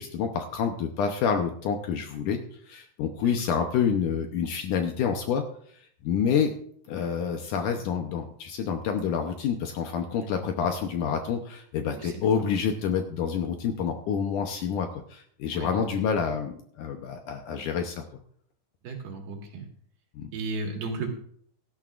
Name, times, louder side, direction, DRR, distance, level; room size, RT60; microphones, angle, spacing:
voice 1, 0.0-2.4 2.7-5.4 6.0-6.5 6.9-18.0 20.2-20.3, left 7 dB, 75° left, 5 dB, 1.9 m, -28 dB
voice 2, 3.1-3.7 10.2-10.3 11.9-12.1 12.4-12.6 15.5-15.9 18.8-19.7 20.3-21.1, right 3 dB, 70° right, 2 dB, 3.7 m, -35 dB
17.0 x 13.0 x 2.5 m, 0.62 s
omnidirectional pair, 4.7 m